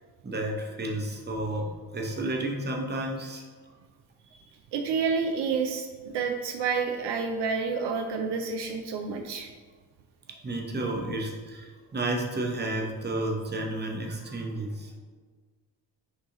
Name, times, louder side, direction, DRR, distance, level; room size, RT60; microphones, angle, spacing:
voice 1, 0.2-3.4 10.3-14.9, right 1 dB, 25° right, 1 dB, 0.8 m, -31 dB
voice 2, 4.7-9.5, right 5 dB, 70° right, 4 dB, 0.5 m, -29 dB
6.5 x 2.4 x 2.9 m, 1.5 s
supercardioid pair, 55°, 43 cm